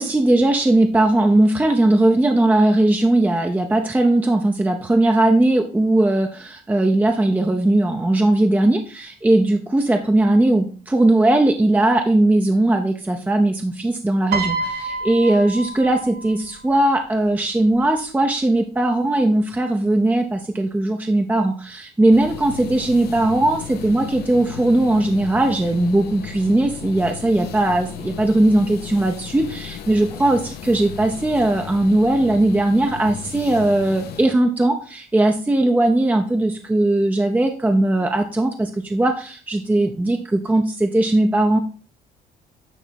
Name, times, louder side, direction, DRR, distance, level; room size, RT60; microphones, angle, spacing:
voice 1, 0.0-41.6, right 1 dB, 10° right, 4 dB, 0.7 m, -18 dB
Piano, 14.3-16.7 17.7-18.0, right 3 dB, 65° right, 1.0 m, -28 dB
Refrigerated Shelf, 22.1-34.2, left 9 dB, 70° left, 0.8 m, -35 dB
9.2 x 3.4 x 4.3 m, 0.39 s
cardioid pair, 110°, 17 cm